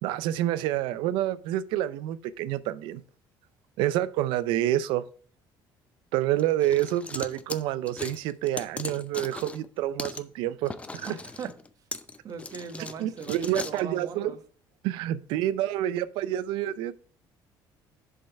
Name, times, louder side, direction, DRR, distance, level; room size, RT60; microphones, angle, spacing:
voice 1, 0.0-3.0 3.8-5.0 6.1-11.1 13.0-14.3 14.8-16.9, right 13 dB, 85° right, 0.5 m, -28 dB
sound 1, 6.4-9.7 10.0-10.2 10.6-13.8, left 3 dB, 15° left, 0.6 m, -39 dB
voice 2, 11.0-11.5 12.2-14.4, right 5 dB, 45° right, 1.2 m, -40 dB
7.2 x 5.5 x 4.5 m
cardioid pair, 130°, 8 cm